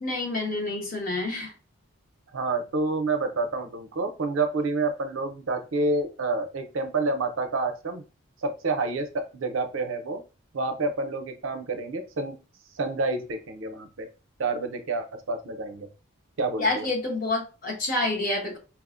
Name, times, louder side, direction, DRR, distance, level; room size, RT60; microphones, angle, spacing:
voice 1, 0.0-1.5 16.6-18.6, left 2 dB, 40° left, 0.8 m, -28 dB
voice 2, 2.3-8.0 8.4-10.2 10.5-12.4 12.7-14.1 14.4-15.9 16.4-16.9, right 3 dB, 75° right, 0.5 m, -28 dB
4.6 x 2.1 x 2.4 m
head